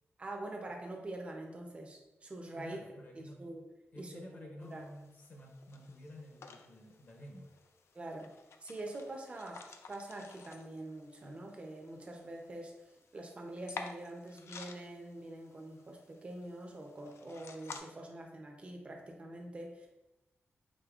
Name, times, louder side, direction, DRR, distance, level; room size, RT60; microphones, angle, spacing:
voice 1, 0.2-3.6 4.0-4.8 7.9-12.8 13.1-19.9, right 1 dB, 25° right, 1 dB, 0.6 m, -45 dB
voice 2, 2.5-3.5 3.9-7.5, left 1 dB, 45° left, 0 dB, 0.7 m, -51 dB
sound 1, 4.6-17.8, left 5 dB, 80° left, 0.4 m, -52 dB
5.1 x 3.7 x 2.4 m, 0.97 s
wide cardioid pair, 175°, 4 cm